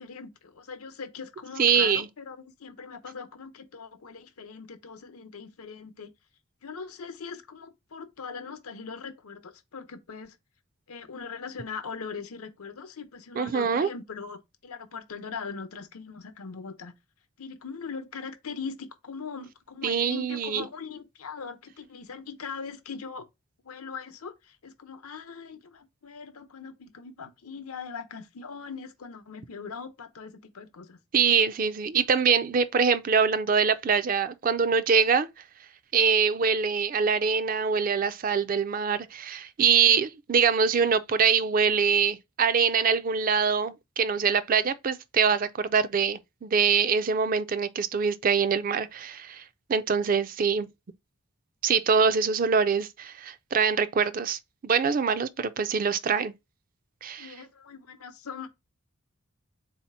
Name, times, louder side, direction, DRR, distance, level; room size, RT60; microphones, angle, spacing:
voice 1, 0.0-6.1 6.6-10.4 10.9-16.9 17.4-23.3 23.6-31.0 57.2-58.5, left 5 dB, 85° left, 0.7 m, -41 dB
voice 2, 1.6-2.1 13.4-13.9 19.8-20.7 31.1-35.3 35.9-49.4 49.7-50.7 51.6-56.3 57.0-57.3, right 6 dB, 40° right, 0.3 m, -24 dB
4.0 x 2.8 x 4.3 m
head